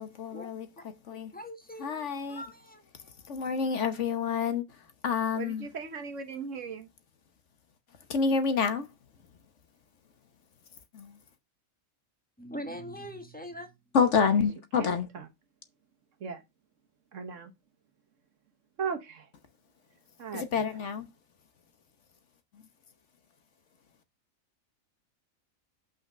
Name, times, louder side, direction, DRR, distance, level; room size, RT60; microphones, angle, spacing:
voice 1, 0.0-1.4 1.8-2.4 2.9-5.7 7.9-9.5 10.7-11.2 13.9-15.1 20.1-21.1 22.5-22.7, left 5 dB, 60° left, 1.3 m, -29 dB
voice 2, 1.3-2.8 12.4-13.7, equal, 5° left, 1.3 m, -42 dB
voice 3, 5.4-6.9 14.8-14.9 16.2-16.4 17.1-17.5 18.8-19.3 20.2-20.4, right 5 dB, 65° right, 1.4 m, -37 dB
5.7 x 5.6 x 6.1 m
omnidirectional pair, 1.4 m